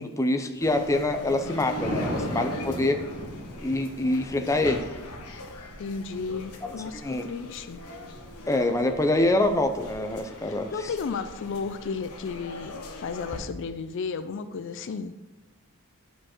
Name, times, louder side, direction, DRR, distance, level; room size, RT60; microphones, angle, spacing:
voice 1, 0.0-3.0 3.6-4.9 7.0-7.3 8.5-10.7, left 2 dB, 15° left, 5 dB, 0.6 m, -25 dB
sound 1, 0.6-13.4, left 1 dB, 85° left, 1.2 m, -40 dB
Thunder, 1.7-9.8 12.5-12.9, equal, 30° right, 2.5 m, -39 dB
voice 2, 5.8-7.8 10.4-15.1, left 5 dB, 55° left, 10 dB, 0.4 m, -34 dB
9.8 x 5.1 x 4.4 m, 1.2 s
head